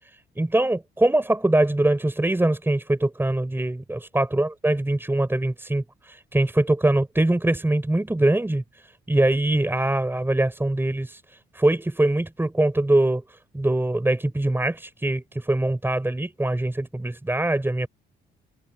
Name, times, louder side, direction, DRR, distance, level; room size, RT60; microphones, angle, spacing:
voice 1, 0.4-8.6 9.1-11.2 11.5-13.2 13.5-17.9, right 1 dB, 10° right, 4.9 m, -23 dB
cardioid pair, 90°, 20 cm